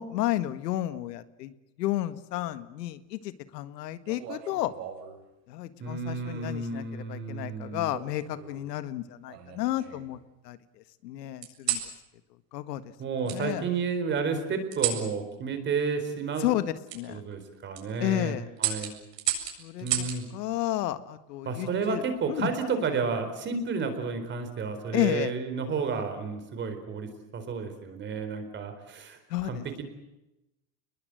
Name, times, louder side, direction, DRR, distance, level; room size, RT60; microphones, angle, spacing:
voice 1, 0.0-4.7 5.5-10.2 10.4-11.8 12.5-12.8 13.3-13.6 16.4-17.2 18.0-18.5 19.6-20.1 20.3-22.0 22.3-22.5 24.9-25.3 29.3-29.6, left 14 dB, 80° left, 12 dB, 1.8 m, -32 dB
sound 1, 4.1-5.2 6.2-6.6 7.9-8.7 9.3-10.2 11.4-11.9 13.3-13.4 14.7-15.1 16.9-17.0 17.5-17.8 18.6-20.2 21.7-22.1, right 11 dB, 85° right, 7.8 m, -33 dB
voice 2, 5.8-7.9 13.0-16.5 17.1-18.9 19.8-20.3 21.4-29.8, right 5 dB, 25° right, 8 dB, 4.3 m, -31 dB
29.5 x 21.5 x 7.8 m, 0.93 s
supercardioid pair, 160°, 48 cm